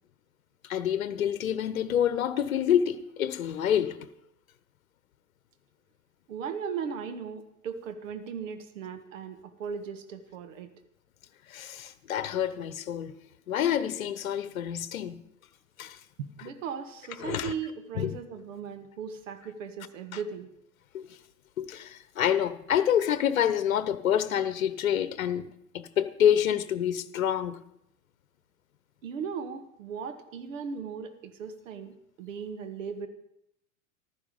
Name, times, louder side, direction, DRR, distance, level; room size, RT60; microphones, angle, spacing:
voice 1, 0.6-4.1 11.5-13.2 13.5-15.2 15.8-16.0 17.2-17.5 18.0-18.1 20.9-21.1 21.6-25.5 25.7-27.6, left 9 dB, 70° left, 0.9 m, -27 dB
voice 2, 6.3-10.7 16.2-20.5 29.0-33.1, right 6 dB, 65° right, 1.6 m, -37 dB
15.0 x 12.5 x 5.2 m
figure-of-eight pair, 90°, 42 cm